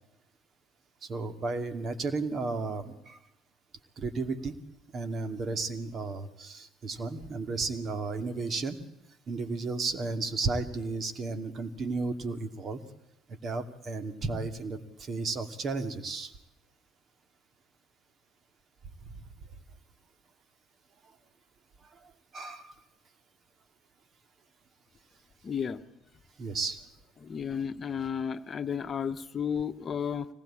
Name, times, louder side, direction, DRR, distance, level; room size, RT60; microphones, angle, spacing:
voice 1, 1.0-3.2 4.0-4.5 4.9-8.8 9.3-12.8 13.3-16.3 22.3-22.8 26.4-26.8, right 3 dB, 45° right, 10 dB, 2.4 m, -33 dB
voice 2, 25.4-25.8 27.2-30.3, left 7 dB, 40° left, 10 dB, 1.2 m, -33 dB
25.0 x 19.5 x 8.8 m, 0.88 s
hypercardioid pair, 60°, 0 cm